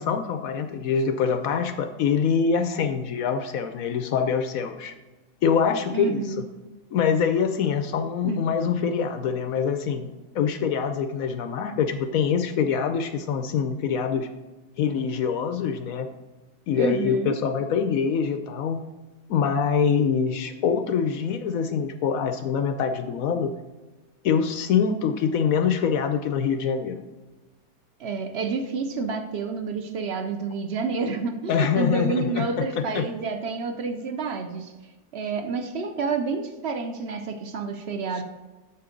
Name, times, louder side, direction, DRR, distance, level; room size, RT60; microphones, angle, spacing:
voice 1, 0.0-4.9 5.4-6.4 6.9-14.3 14.8-16.1 16.7-18.8 19.3-23.5 24.2-27.0 31.5-33.1, left 6 dB, 70° left, 8 dB, 0.8 m, -24 dB
voice 2, 5.9-6.4 8.2-8.4 16.7-17.4 28.0-34.7 35.1-38.2, right 4 dB, 75° right, 7 dB, 0.6 m, -29 dB
8.7 x 6.9 x 3.8 m, 1.2 s
omnidirectional pair, 1.9 m